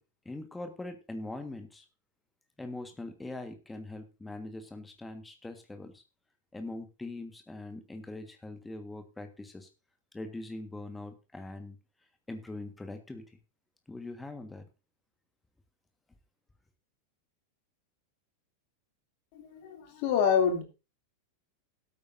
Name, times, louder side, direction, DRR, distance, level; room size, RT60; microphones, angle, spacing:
voice 1, 0.2-1.8 2.6-6.0 6.5-9.7 10.1-11.8 12.3-13.2 13.9-14.7, left 2 dB, 10° left, 7 dB, 1.5 m, -42 dB
voice 2, 19.3-20.6, left 7 dB, 45° left, 3 dB, 2.9 m, -27 dB
17.5 x 8.7 x 2.7 m, 0.29 s
figure-of-eight pair, 90°, 0 cm